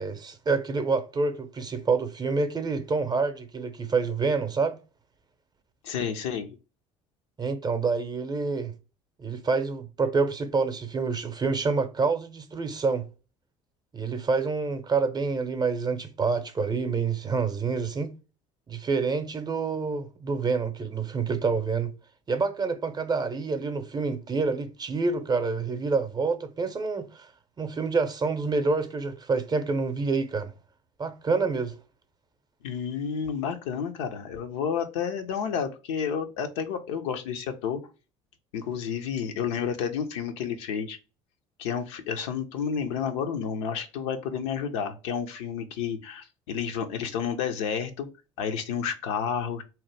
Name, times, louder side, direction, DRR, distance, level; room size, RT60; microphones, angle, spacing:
voice 1, 0.0-4.8 7.4-8.7 9.2-13.0 13.9-18.1 18.7-21.9 22.3-27.3 27.6-30.5 31.0-31.7, right 4 dB, 30° right, 0.6 m, -27 dB
voice 2, 5.8-6.6 32.6-37.8 38.5-41.0 41.6-48.1 48.4-49.6, left 7 dB, 80° left, 0.5 m, -30 dB
2.8 x 2.1 x 3.1 m
hypercardioid pair, 70°, 15 cm